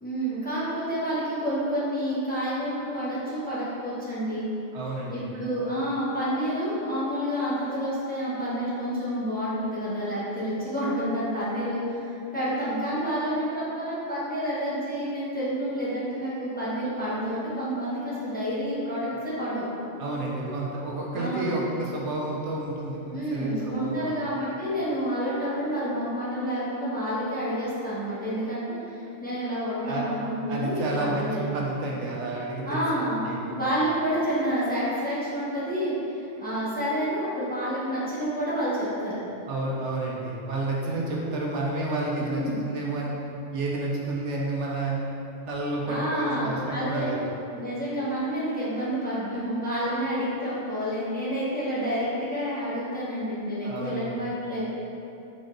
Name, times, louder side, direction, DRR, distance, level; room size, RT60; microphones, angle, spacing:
voice 1, 0.0-4.5 5.1-19.7 21.1-21.6 23.1-28.6 28.9-31.4 32.6-33.2 33.5-35.9 36.4-39.3 42.2-42.6 45.8-47.1 47.5-54.6, equal, 10° left, -10 dB, 0.9 m, -29 dB
voice 2, 4.7-5.3 20.0-24.2 29.8-30.1 30.5-32.9 33.3-33.6 39.5-43.2 43.5-45.0 45.5-47.2 53.6-54.2, right 2 dB, 75° right, -3 dB, 0.9 m, -30 dB
3.9 x 3.4 x 3.8 m, 2.7 s
omnidirectional pair, 1.3 m